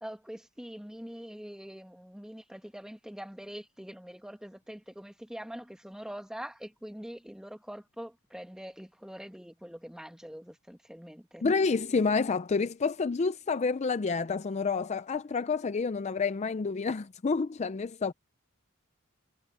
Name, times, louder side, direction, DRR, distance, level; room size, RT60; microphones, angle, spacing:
voice 1, 0.0-11.4, equal, 5° right, 1.3 m, -44 dB
voice 2, 11.4-18.1, left 4 dB, 30° left, 0.4 m, -29 dB
head